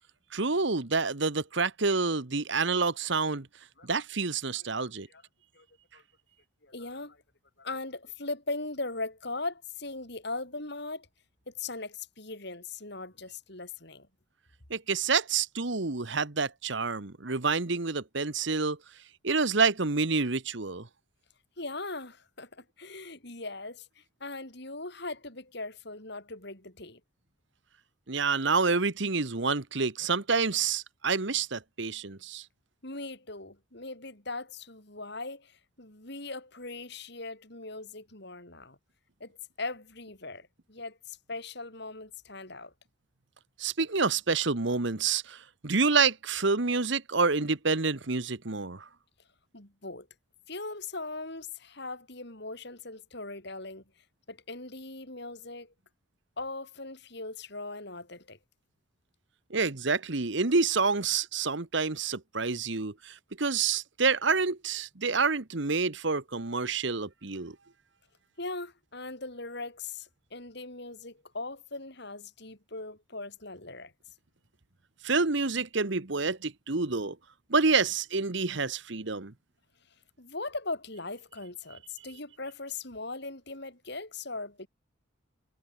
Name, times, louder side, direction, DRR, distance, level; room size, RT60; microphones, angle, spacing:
voice 1, 0.3-3.5 3.8-5.1 14.7-18.8 19.2-20.9 28.1-32.4 43.6-48.8 59.5-67.5 75.0-77.2 77.5-79.3, right 4 dB, 60° right, 1.3 m, -28 dB
voice 2, 4.5-5.2 5.5-5.7 5.9-6.0 6.6-7.2 7.6-11.1 11.5-14.1 21.6-27.0 32.8-38.8 39.2-42.7 49.5-50.1 50.5-53.8 54.3-55.7 56.4-58.4 68.4-73.9 80.2-84.7, left 3 dB, 55° left, 4.9 m, -39 dB
head